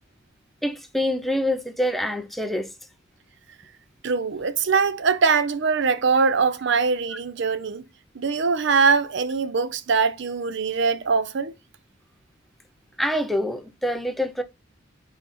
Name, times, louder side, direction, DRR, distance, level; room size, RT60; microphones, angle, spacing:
voice 1, 0.6-2.7 13.0-14.4, left 1 dB, ahead, 0.7 m, -25 dB
voice 2, 4.0-7.8 8.1-11.5, right 5 dB, 60° right, 0.6 m, -22 dB
5.3 x 4.8 x 4.3 m
head